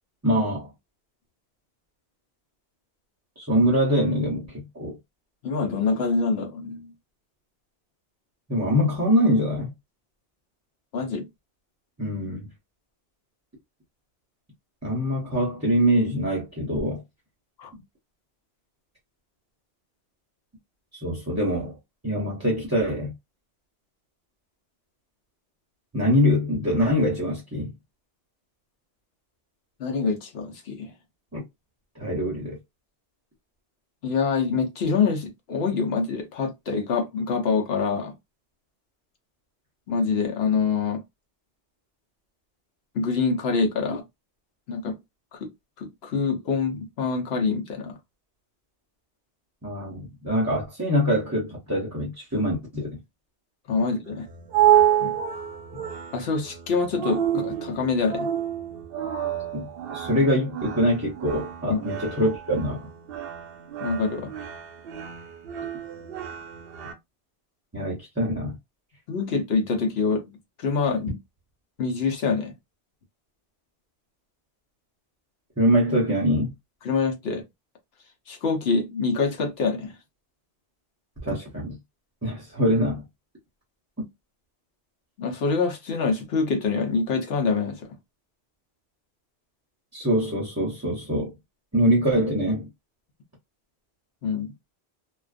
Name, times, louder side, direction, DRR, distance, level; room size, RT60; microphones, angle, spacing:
voice 1, 0.2-0.7 3.4-5.0 8.5-9.7 12.0-12.4 14.8-17.0 17.7-17.8 20.9-21.7 22.0-23.1 25.9-27.7 31.3-31.4 32.0-32.6 49.6-53.0 59.5-62.9 67.7-68.6 75.6-76.5 81.2-81.8 82.2-83.0 89.9-91.3 91.7-92.7, equal, 20° right, 0.6 m, -24 dB
voice 2, 5.4-6.9 10.9-11.3 17.6-17.7 29.8-30.9 34.0-38.1 39.9-41.0 42.9-44.0 44.7-45.0 45.3-45.5 45.8-48.0 53.7-54.3 55.0-55.2 56.1-58.3 61.7-61.8 63.8-64.3 69.1-70.3 70.6-71.2 71.8-72.5 76.8-77.4 78.3-79.9 85.2-87.9 94.2-94.5, left 4 dB, 75° left, 1.0 m, -25 dB
sound 1, 54.1-66.9, right 11 dB, 65° right, 0.7 m, -28 dB
2.4 x 2.2 x 2.4 m
omnidirectional pair, 1.1 m